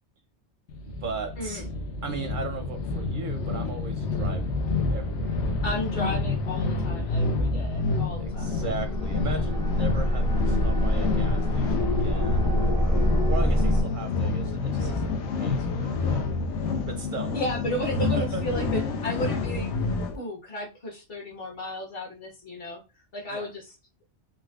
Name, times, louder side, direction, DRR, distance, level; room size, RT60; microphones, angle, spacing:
sound 1, 0.7-20.2, left 3 dB, 80° left, 0.9 m, -28 dB
voice 1, 0.8-1.7 2.0-5.4 8.2-16.3 16.9-17.3 17.8-18.4 23.3-23.5, right 4 dB, 60° right, 6 dB, 0.6 m, -38 dB
voice 2, 5.6-8.6 17.3-19.7 20.0-22.8 23.1-23.7, equal, 55° left, 0 dB, 1.4 m, -34 dB
sound 2, 8.1-13.8, equal, 25° left, 0.5 m, -25 dB
3.9 x 2.1 x 2.3 m, 0.28 s
omnidirectional pair, 1.2 m